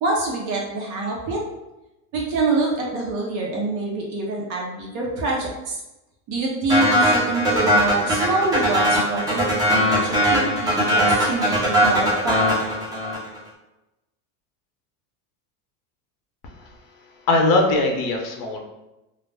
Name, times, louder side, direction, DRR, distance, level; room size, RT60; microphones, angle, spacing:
voice 1, 0.0-1.4 2.1-5.8 6.3-12.4, right 2 dB, 40° right, -2 dB, 0.7 m, -25 dB
sound 1, 6.7-13.4, equal, 10° right, 0.3 m, -20 dB
voice 2, 17.3-18.6, left 2 dB, 50° left, 2 dB, 0.6 m, -20 dB
2.3 x 2.0 x 3.3 m, 0.96 s
supercardioid pair, 145°, 43 cm